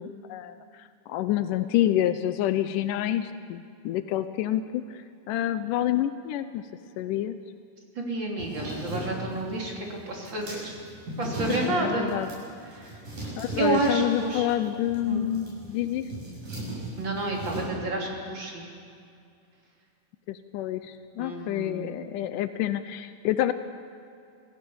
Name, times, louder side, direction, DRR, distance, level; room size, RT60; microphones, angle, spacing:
voice 1, 0.0-5.0 5.3-6.7 7.0-7.4 11.7-12.3 13.4-16.1 20.3-23.5, left 12 dB, 85° left, 11 dB, 2.2 m, -28 dB
voice 2, 8.0-10.7 11.2-12.1 12.7-13.0 13.6-14.5 15.1-15.3 17.0-18.7 21.2-22.0, right 2 dB, 35° right, -1 dB, 3.6 m, -30 dB
sound 1, 8.4-17.7, right 1 dB, 80° right, 8.7 m, -37 dB
27.0 x 16.0 x 7.1 m, 2.5 s
omnidirectional pair, 3.7 m